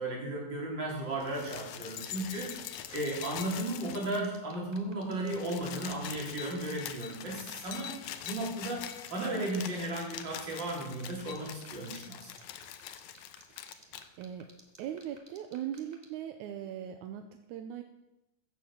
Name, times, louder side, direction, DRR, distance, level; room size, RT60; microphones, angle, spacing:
voice 1, 0.0-8.8 9.1-12.3, right 1 dB, 30° right, -3 dB, 4.1 m, -35 dB
sound 1, 1.1-4.4 4.7-4.8 5.1-14.1 15.0-15.1, left 11 dB, 75° left, 1.8 m, -44 dB
sound 2, 1.9-16.1, right 2 dB, 55° right, 0.4 m, -54 dB
voice 2, 13.5-14.5 14.8-17.8, right 10 dB, 75° right, 6 dB, 1.9 m, -40 dB
15.5 x 7.3 x 7.4 m, 0.95 s
omnidirectional pair, 4.0 m